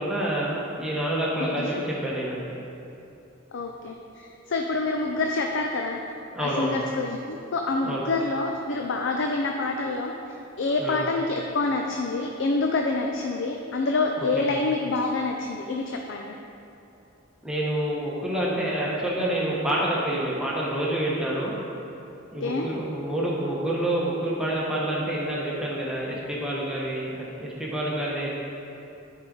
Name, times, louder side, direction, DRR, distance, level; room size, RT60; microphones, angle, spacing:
voice 1, 0.0-2.5 6.3-6.8 7.8-8.0 10.8-11.0 14.2-14.5 17.4-21.5 22.3-27.1 27.4-28.4, right 1 dB, 5° right, -6 dB, 1.0 m, -28 dB
voice 2, 3.5-6.0 6.4-10.1 10.6-16.3 22.4-22.7, left 3 dB, 70° left, 2 dB, 0.5 m, -27 dB
10.5 x 4.8 x 3.9 m, 2.7 s
head